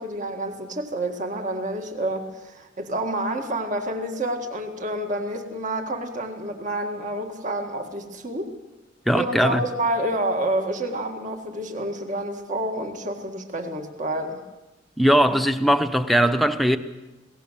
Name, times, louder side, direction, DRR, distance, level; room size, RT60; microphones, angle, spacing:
voice 1, 0.0-8.5 9.1-14.4, right 1 dB, 40° right, 1.9 m, -28 dB
voice 2, 9.1-9.6 15.0-16.8, equal, ahead, 0.9 m, -19 dB
21.5 x 18.0 x 7.5 m
head